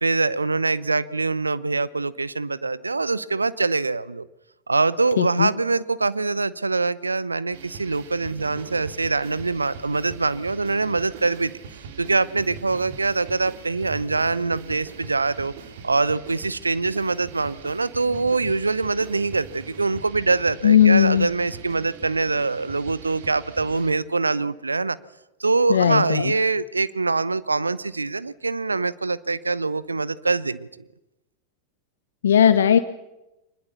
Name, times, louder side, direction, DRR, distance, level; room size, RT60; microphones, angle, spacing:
voice 1, 0.0-4.3 4.7-11.5 12.0-15.5 15.8-25.0 25.4-30.7, right 3 dB, 80° right, 20 dB, 0.7 m, -24 dB
voice 2, 5.2-5.5 20.6-21.3 25.7-26.3 32.2-32.8, left 9 dB, 65° left, 11 dB, 0.9 m, -17 dB
sound 1, 7.5-23.9, right 6 dB, 55° right, 2.8 m, -41 dB
24.0 x 21.0 x 7.0 m, 0.96 s
figure-of-eight pair, 90°, 0 cm